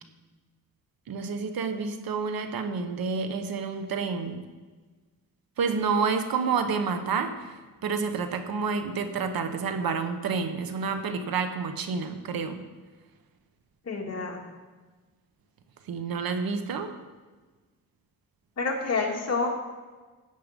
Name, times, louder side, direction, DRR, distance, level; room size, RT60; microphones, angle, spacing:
voice 1, 1.1-4.5 5.6-7.3 7.8-12.7 15.9-16.9, right 5 dB, 80° right, 8 dB, 1.2 m, -29 dB
voice 2, 13.8-14.4 18.6-19.5, left 4 dB, 45° left, -1 dB, 2.6 m, -28 dB
14.5 x 8.7 x 5.3 m, 1.3 s
cardioid pair, 100°, 35 cm